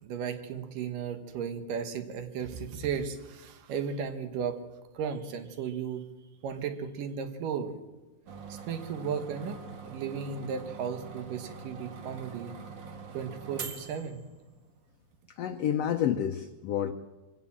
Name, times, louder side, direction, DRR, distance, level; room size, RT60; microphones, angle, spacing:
voice 1, 0.0-4.6 4.9-6.0 6.4-7.7 8.5-12.5 13.1-14.2, right 7 dB, 75° right, 9 dB, 3.0 m, -35 dB
sound 1, 8.3-14.8, right 5 dB, 50° right, 1.6 m, -44 dB
voice 2, 15.4-16.9, left 9 dB, 85° left, 8 dB, 1.4 m, -29 dB
23.5 x 16.5 x 7.4 m, 1.2 s
omnidirectional pair, 3.9 m